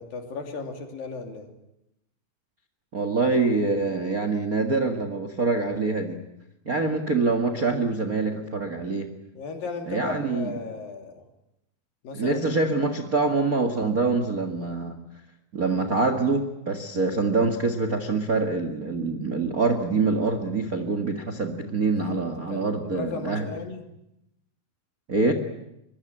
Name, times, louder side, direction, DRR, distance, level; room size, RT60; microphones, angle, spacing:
voice 1, 0.0-1.5 9.3-11.2 12.0-12.6 22.1-22.2 22.5-23.8, left 4 dB, 65° left, 4 dB, 4.5 m, -36 dB
voice 2, 2.9-6.2 6.6-9.1 9.9-10.5 12.1-14.9 15.5-23.5 25.1-25.3, right 3 dB, 40° right, 8 dB, 1.2 m, -25 dB
23.5 x 23.0 x 8.8 m, 0.85 s
omnidirectional pair, 4.4 m